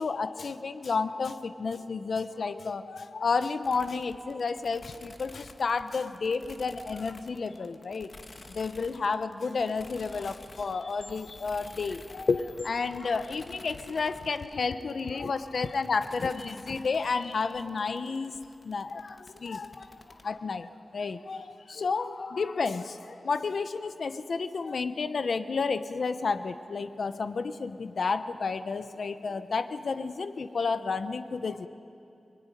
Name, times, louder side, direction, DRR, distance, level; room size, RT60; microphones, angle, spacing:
voice 1, 0.0-8.1 8.5-18.4 18.6-31.7, left 4 dB, 70° left, 11 dB, 0.9 m, -31 dB
sound 1, 3.6-20.2, left 2 dB, 35° left, 1.6 m, -51 dB
23.5 x 21.5 x 9.9 m, 2.7 s
wide cardioid pair, 130°, 0 cm